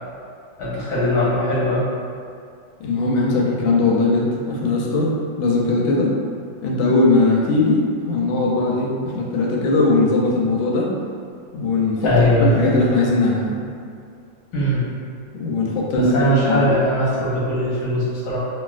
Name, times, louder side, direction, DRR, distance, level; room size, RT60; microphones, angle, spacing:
voice 1, 0.6-1.8 12.0-12.6 14.5-14.8 15.9-18.4, equal, 65° left, -8 dB, 1.1 m, -20 dB
voice 2, 2.8-6.1 6.6-10.9 11.5-12.1 12.4-13.6 15.3-16.7, left 2 dB, 85° left, -2 dB, 1.3 m, -19 dB
3.2 x 2.6 x 2.3 m, 2.3 s
omnidirectional pair, 2.1 m